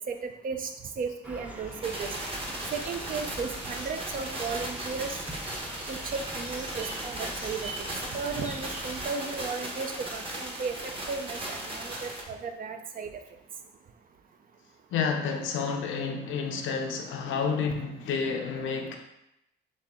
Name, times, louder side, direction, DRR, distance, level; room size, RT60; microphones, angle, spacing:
voice 1, 0.1-0.7 1.0-2.1 2.7-5.2 5.9-7.7 8.1-10.8 11.1-13.1, right 5 dB, 45° right, 6 dB, 0.5 m, -35 dB
sound 1, 1.2-9.1, right 1 dB, 5° right, 0.7 m, -43 dB
sound 2, 1.8-12.2, right 1 dB, 25° right, 1.0 m, -37 dB
voice 2, 14.9-19.0, left 5 dB, 80° left, 4 dB, 0.6 m, -30 dB
4.2 x 2.8 x 3.6 m, 0.84 s
cardioid pair, 90°, 20 cm